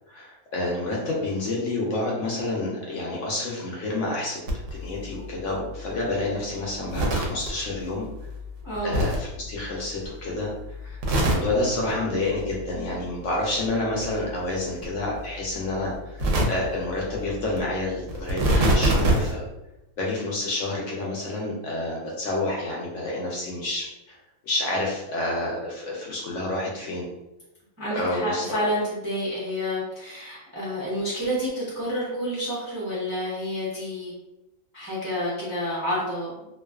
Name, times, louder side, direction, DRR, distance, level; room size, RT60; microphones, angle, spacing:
voice 1, 0.1-4.4 4.7-8.0 8.8-10.5 10.8-19.4 20.0-24.2 24.4-27.1 27.9-28.4, left 2 dB, 70° left, -3 dB, 0.8 m, -29 dB
sound 1, 4.5-10.3 10.5-11.9 12.3-13.7 13.9-19.3, right 1 dB, 65° right, 0.8 m, -28 dB
voice 2, 8.6-9.0 27.8-34.1 34.7-36.5, equal, 25° right, -8 dB, 0.4 m, -29 dB
2.4 x 2.3 x 2.3 m, 0.94 s
omnidirectional pair, 1.6 m